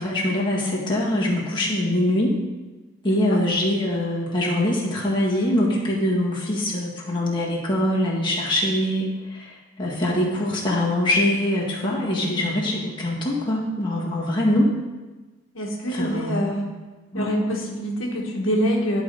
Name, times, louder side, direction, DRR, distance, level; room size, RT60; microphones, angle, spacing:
voice 1, 0.0-2.4 3.0-14.7 15.9-16.6 17.1-17.4, left 1 dB, 25° left, -5 dB, 1.8 m, -23 dB
voice 2, 15.5-16.6 17.1-19.0, equal, 80° left, 0 dB, 1.3 m, -25 dB
11.0 x 3.9 x 5.2 m, 1.2 s
head